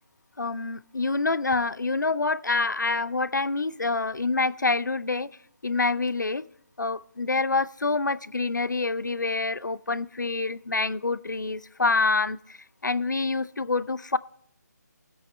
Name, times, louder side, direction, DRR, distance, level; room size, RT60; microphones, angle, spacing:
voice 1, 0.4-5.3 5.6-6.5 6.8-12.6 12.8-14.2, left 3 dB, 80° left, 0.5 m, -26 dB
22.5 x 8.3 x 3.2 m
figure-of-eight pair, 150°, 10 cm